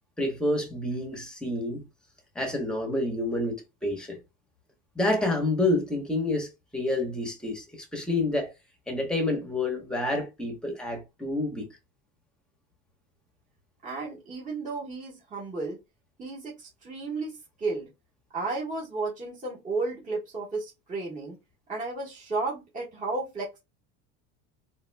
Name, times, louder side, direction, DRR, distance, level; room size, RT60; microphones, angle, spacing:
voice 1, 0.2-1.8 2.3-4.2 4.9-8.5 8.9-11.7, left 2 dB, 5° left, 1.0 m, -28 dB
voice 2, 13.8-15.8 16.2-17.9 18.3-21.4 21.7-23.6, right 3 dB, 25° right, 1.4 m, -33 dB
3.9 x 2.5 x 2.2 m
cardioid pair, 125°, 32 cm